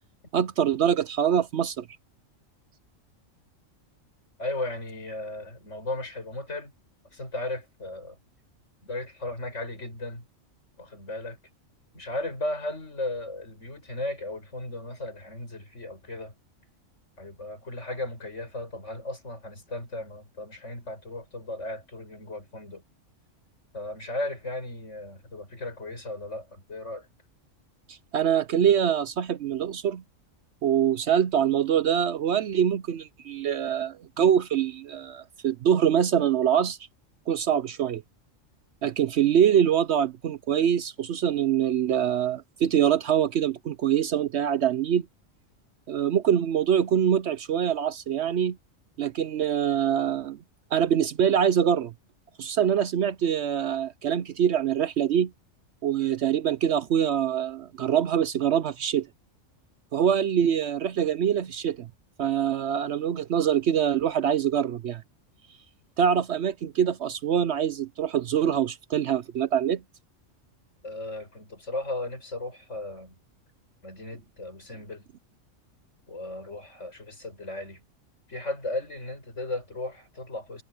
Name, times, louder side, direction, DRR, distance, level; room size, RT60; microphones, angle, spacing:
voice 1, 0.3-1.9 27.9-30.0 30.6-36.8 37.3-38.0 38.8-45.1 45.9-48.6 49.0-50.4 50.7-51.9 52.4-55.3 55.8-59.1 59.9-61.9 62.2-65.0 66.0-69.8, right 9 dB, 65° right, 0.8 m, -24 dB
voice 2, 4.4-6.7 7.1-8.2 8.8-10.3 10.8-11.4 11.9-16.3 17.2-22.8 23.7-27.1 70.8-73.2 73.8-75.1 76.1-77.8 78.3-80.6, left 2 dB, 60° left, 7.0 m, -36 dB
omnidirectional pair, 1.4 m